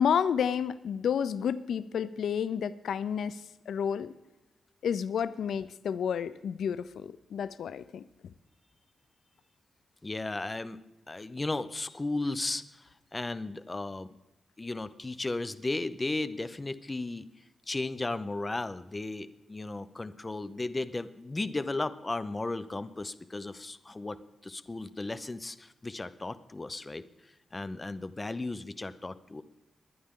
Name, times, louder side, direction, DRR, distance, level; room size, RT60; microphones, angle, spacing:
voice 1, 0.0-4.1 4.8-8.0, left 8 dB, 85° left, 16 dB, 0.4 m, -30 dB
voice 2, 10.0-10.8 11.1-14.1 14.6-17.3 17.7-24.2 24.4-27.0 27.5-29.4, left 2 dB, 25° left, 13 dB, 0.7 m, -35 dB
21.5 x 10.0 x 3.8 m, 0.96 s
cardioid pair, 95°, 0 cm